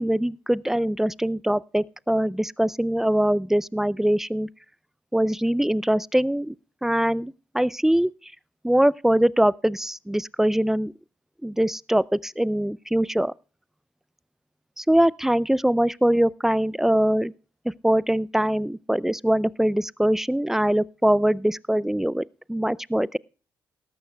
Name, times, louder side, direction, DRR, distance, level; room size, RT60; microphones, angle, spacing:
voice 1, 0.0-4.5 5.1-6.5 6.8-8.1 8.6-10.9 11.4-13.3 14.8-17.3 17.8-22.2 22.5-23.2, right 1 dB, 5° right, 0.4 m, -22 dB
17.5 x 13.5 x 2.3 m
supercardioid pair, 55°, 7 cm